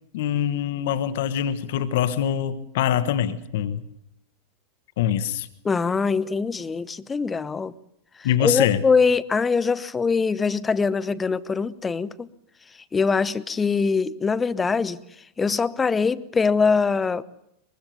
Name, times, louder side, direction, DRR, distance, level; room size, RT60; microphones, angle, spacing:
voice 1, 0.1-3.8 5.0-5.5 8.2-8.8, left 10 dB, 55° left, 1.4 m, -24 dB
voice 2, 5.6-7.7 8.4-12.3 12.9-15.0 15.4-17.2, left 5 dB, 15° left, 0.9 m, -23 dB
24.0 x 22.5 x 6.9 m
figure-of-eight pair, 90°, 0 cm